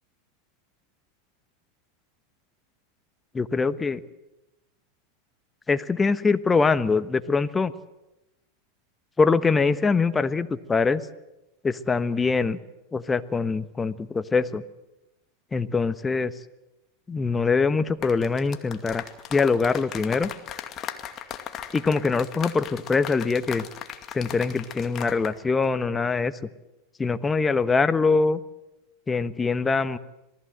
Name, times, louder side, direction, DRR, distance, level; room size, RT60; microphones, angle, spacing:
voice 1, 3.3-4.0 5.7-7.7 9.2-11.0 11.6-12.6 12.9-14.6 15.5-16.3 17.1-19.0 19.3-20.3 21.7-23.6 24.1-26.4 27.0-28.4 29.1-30.0, left 4 dB, 20° left, 13 dB, 1.2 m, -23 dB
sound 1, 17.9-25.4 25.6-25.9, left 10 dB, 40° left, 2.3 m, -38 dB
27.0 x 19.0 x 7.8 m, 0.95 s
hypercardioid pair, 90°, 0 cm